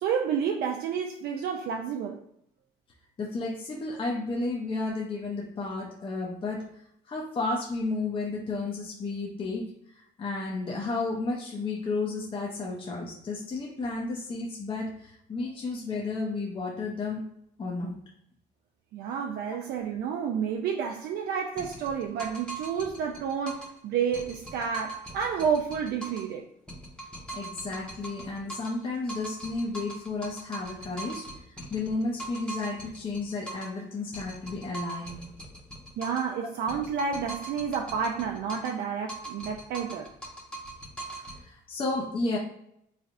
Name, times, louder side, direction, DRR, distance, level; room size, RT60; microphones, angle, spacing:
voice 1, 0.0-2.2 18.9-26.5 36.0-40.1, right 7 dB, 70° right, 2 dB, 0.5 m, -30 dB
voice 2, 3.2-6.7 7.1-17.2 17.6-17.9 27.3-35.3 41.4-42.4, left 3 dB, 30° left, -1 dB, 0.7 m, -32 dB
sound 1, 21.6-23.8 24.1-26.3 26.7-28.8 29.1-33.8 34.1-36.3 36.7-38.8 39.1-41.4, right 2 dB, 5° left, 0.9 m, -41 dB
4.0 x 3.2 x 2.5 m, 0.74 s
cardioid pair, 110°, 17 cm